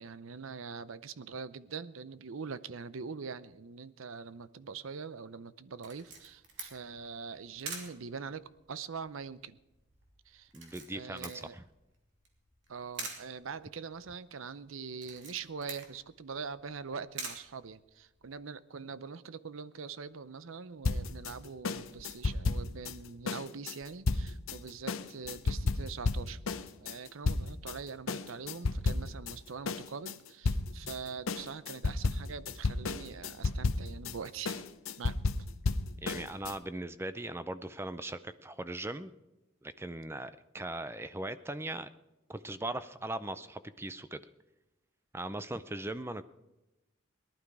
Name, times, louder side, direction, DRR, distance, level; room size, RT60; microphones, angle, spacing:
voice 1, 0.0-9.6 10.3-10.5 10.9-11.5 12.7-26.4 26.8-34.6 35.0-35.2, right 5 dB, 80° right, 0.6 m, -43 dB
Camera, 5.8-18.3, right 4 dB, 60° right, 2.9 m, -48 dB
voice 2, 10.5-11.6 36.0-39.1 39.6-41.9 42.3-44.2 45.1-46.3, right 1 dB, 10° right, 0.4 m, -39 dB
sound 1, 20.8-27.8 28.1-29.4 29.7-36.6, left 3 dB, 85° left, 0.7 m, -33 dB
18.5 x 12.0 x 4.8 m
head